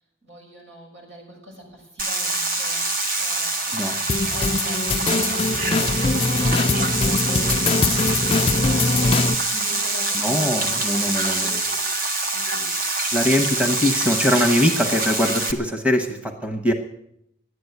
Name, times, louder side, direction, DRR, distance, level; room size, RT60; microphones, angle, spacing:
voice 1, 0.2-13.0, right 1 dB, 85° right, -1 dB, 6.4 m, -42 dB
sound 1, 2.0-15.5, right 2 dB, 45° right, 1.3 m, -25 dB
sound 2, 4.1-9.3, left 3 dB, 30° left, 0.4 m, -22 dB
voice 2, 10.2-11.5 13.1-16.7, left 1 dB, 5° right, 5 dB, 1.1 m, -22 dB
12.0 x 9.6 x 9.4 m, 0.75 s
head